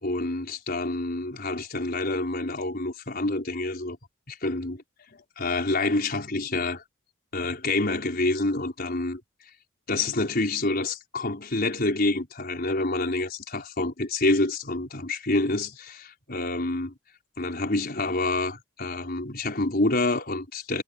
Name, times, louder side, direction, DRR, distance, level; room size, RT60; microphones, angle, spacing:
voice 1, 0.0-4.0 4.3-4.8 5.1-6.8 7.3-9.2 9.9-16.9 17.4-20.8, left 2 dB, 50° left, 5.1 m, -27 dB
head